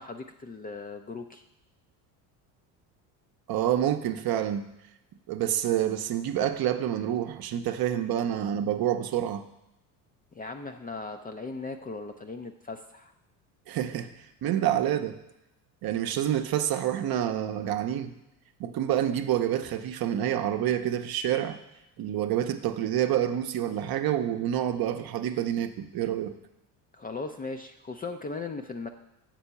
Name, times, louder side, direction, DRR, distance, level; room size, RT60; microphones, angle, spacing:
voice 1, 0.0-1.4 10.3-13.1 26.9-28.9, left 3 dB, 20° left, 6 dB, 0.5 m, -38 dB
voice 2, 3.5-4.6 5.3-9.4 13.7-14.1 14.4-15.2 15.8-18.1 18.6-21.6 22.0-26.4, right 11 dB, 45° right, 7 dB, 0.8 m, -28 dB
7.6 x 4.4 x 6.9 m, 0.88 s
hypercardioid pair, 80°, 49 cm